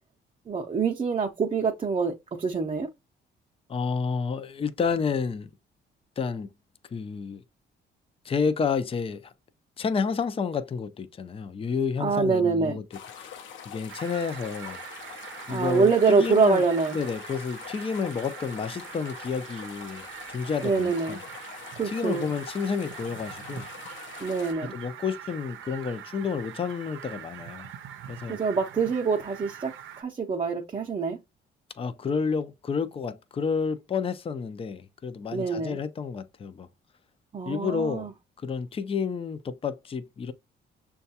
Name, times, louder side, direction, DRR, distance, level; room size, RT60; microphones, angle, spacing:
voice 1, 0.5-2.9 12.0-12.8 15.5-17.0 20.6-21.2 21.8-22.3 24.2-24.8 28.3-31.2 35.3-35.8 37.3-38.1, right 5 dB, 30° right, 0.6 m, -25 dB
voice 2, 3.7-5.5 6.2-6.5 6.9-7.4 8.2-9.3 9.8-12.8 13.1-14.8 15.5-16.6 16.9-21.2 21.8-23.7 24.6-27.7 28.1-28.4 31.8-36.7 37.5-38.1 38.4-40.3, left 5 dB, 30° left, 0.5 m, -30 dB
sound 1, 12.9-24.5, left 7 dB, 70° left, 0.7 m, -44 dB
Fowl, 13.9-30.0, right 10 dB, 80° right, 0.6 m, -43 dB
6.3 x 2.3 x 2.8 m
cardioid pair, 90°, 20 cm